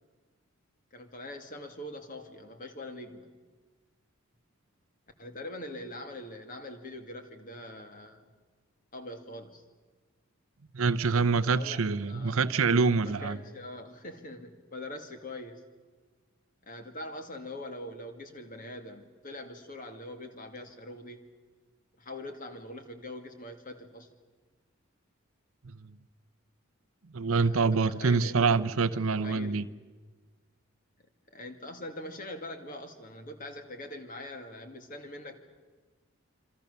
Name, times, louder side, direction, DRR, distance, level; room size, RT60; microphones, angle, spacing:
voice 1, 0.9-3.3 5.2-8.3 8.9-9.6 11.4-12.4 13.0-15.6 16.6-21.3 22.0-24.1 27.4-28.6 28.9-29.6 31.3-35.4, left 1 dB, 40° left, 2.3 m, -43 dB
voice 2, 10.7-13.4 25.6-25.8 27.1-29.7, right 4 dB, 75° right, 0.7 m, -26 dB
27.5 x 25.5 x 6.9 m
head